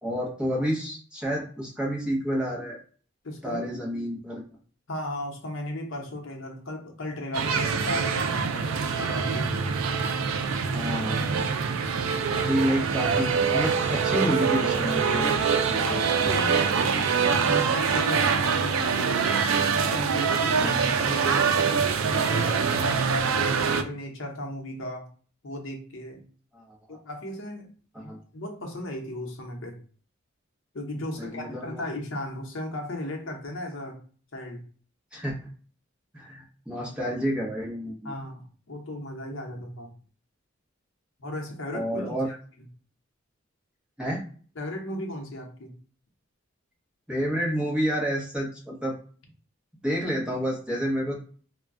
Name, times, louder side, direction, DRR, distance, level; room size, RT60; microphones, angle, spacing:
voice 1, 0.0-2.8 3.4-4.4 10.7-11.3 12.3-15.4 15.7-15.8 20.6-20.8 22.8-23.0 26.5-27.0 27.9-28.2 31.2-31.8 35.1-35.3 36.1-38.1 41.7-42.3 44.0-44.2 47.1-49.0 49.8-51.2, equal, 5° right, -3 dB, 0.8 m, -29 dB
voice 2, 3.2-3.6 4.9-9.5 15.7-25.1 25.4-26.2 26.9-27.7 28.3-29.8 30.7-34.0 34.3-34.6 38.0-39.9 41.2-42.4 44.6-45.7, left 1 dB, 70° left, 2 dB, 0.7 m, -36 dB
sound 1, 7.3-23.8, right 6 dB, 90° right, 0.4 m, -24 dB
2.2 x 2.1 x 3.6 m, 0.42 s
head